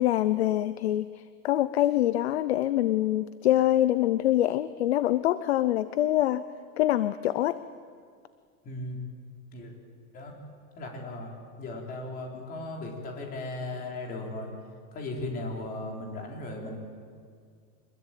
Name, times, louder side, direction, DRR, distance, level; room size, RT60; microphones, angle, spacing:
voice 1, 0.0-6.4 6.8-7.6, left 13 dB, 40° left, 14 dB, 0.6 m, -25 dB
voice 2, 8.6-9.0 9.5-9.7 10.1-10.4 10.8-14.5 14.9-16.8, left 2 dB, 20° left, 0 dB, 3.7 m, -37 dB
25.0 x 21.0 x 9.1 m, 2.1 s
supercardioid pair, 175°, 49 cm